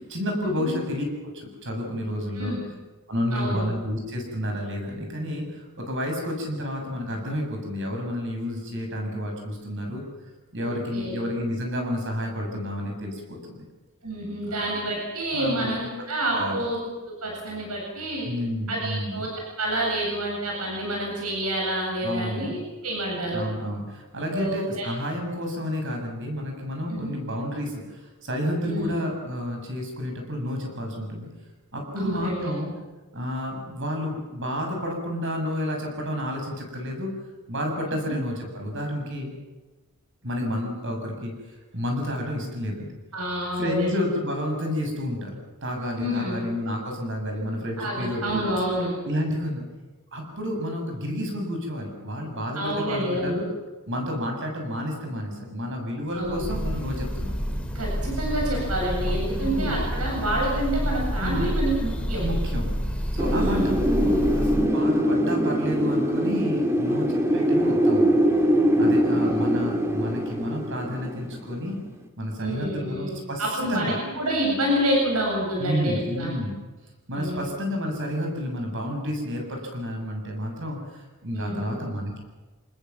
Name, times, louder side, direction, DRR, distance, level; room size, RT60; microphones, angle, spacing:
voice 1, 0.1-2.6 3.1-10.0 10.5-13.7 14.4-14.8 15.3-15.7 16.3-16.6 18.3-19.2 22.0-22.6 23.3-31.3 31.7-32.7 33.1-37.1 37.5-39.3 40.2-41.3 41.7-42.9 43.6-48.4 49.0-49.6 50.1-53.4 53.9-57.4 59.1-59.8 61.2-61.5 62.2-62.7 63.1-68.2 68.8-71.8 72.2-74.0 75.6-76.6 77.1-82.2, equal, 55° right, 2 dB, 7.0 m, -30 dB
voice 2, 3.3-3.6 10.6-11.1 14.0-16.8 17.0-18.3 18.7-19.3 19.6-23.4 24.3-24.9 26.9-27.1 28.6-29.0 32.0-32.5 38.1-38.2 43.1-43.9 46.0-46.4 47.8-48.9 52.5-53.4 56.1-56.4 57.7-62.3 63.3-63.7 68.8-69.3 72.4-76.3 77.1-77.5 81.3-81.7, right 1 dB, 85° right, -1 dB, 7.8 m, -28 dB
Breathing / Bird, 56.2-64.8, equal, 5° left, 2.5 m, -28 dB
Wind, 63.2-71.9, equal, 10° right, 2.3 m, -23 dB
26.0 x 20.0 x 7.3 m, 1.2 s
head